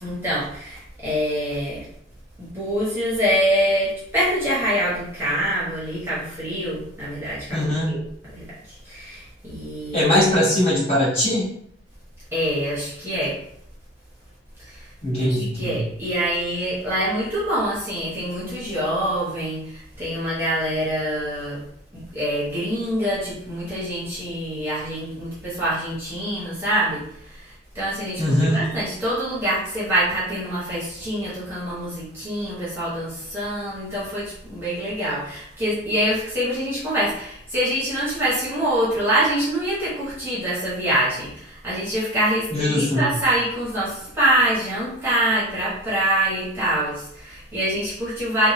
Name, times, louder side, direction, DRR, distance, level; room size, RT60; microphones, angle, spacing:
voice 1, 0.0-1.8 2.4-8.0 8.3-10.1 12.3-13.4 14.6-21.6 21.9-48.5, right 1 dB, 10° right, -9 dB, 1.0 m, -25 dB
voice 2, 7.5-7.9 9.9-11.4 15.0-15.9 28.2-28.6 42.5-43.1, left 1 dB, 30° left, -8 dB, 1.3 m, -21 dB
3.0 x 2.4 x 2.7 m, 0.69 s
head